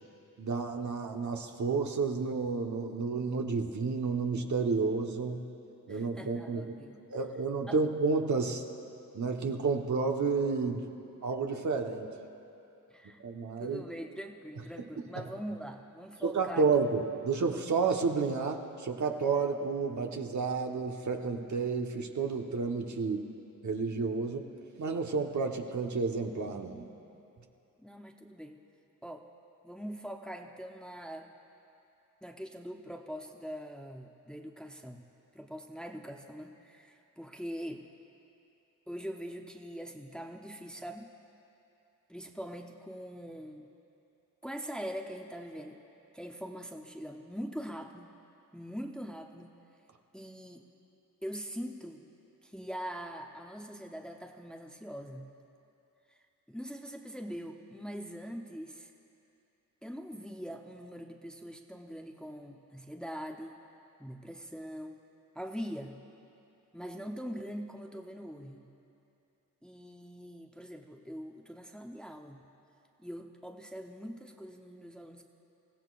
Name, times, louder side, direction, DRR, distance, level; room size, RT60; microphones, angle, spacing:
voice 1, 0.4-5.5 5.9-6.8 7.1-8.6 9.1-10.8 11.2-12.1 13.2-13.8 15.1-15.2 16.2-23.2 23.6-24.5 24.8-26.9, right 4 dB, 50° right, 3 dB, 1.3 m, -31 dB
voice 2, 5.9-7.0 7.7-7.8 12.9-13.2 13.6-16.7 27.8-28.6 29.0-29.3 29.6-31.3 32.2-35.0 35.3-37.9 38.9-41.1 42.1-43.7 44.4-45.8 46.1-48.1 48.5-49.5 50.1-50.6 51.2-52.0 52.4-55.3 56.1-58.9 59.8-63.5 64.0-65.0 65.3-66.0 66.7-68.7 69.6-72.4 73.0-75.2, equal, ahead, 2 dB, 0.9 m, -42 dB
27.5 x 15.5 x 2.5 m, 2.8 s
cardioid pair, 70°, 36 cm